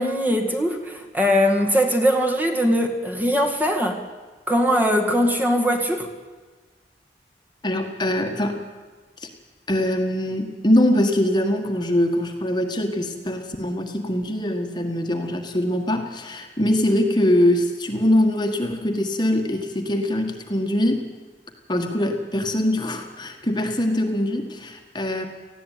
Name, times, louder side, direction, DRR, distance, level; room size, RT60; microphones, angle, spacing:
voice 1, 0.0-4.0 4.5-6.1, equal, 10° right, 3 dB, 1.9 m, -21 dB
voice 2, 7.6-8.6 9.2-9.3 9.7-21.0 21.7-25.3, left 1 dB, 25° left, 4 dB, 1.7 m, -22 dB
19.0 x 15.0 x 9.3 m, 1.4 s
head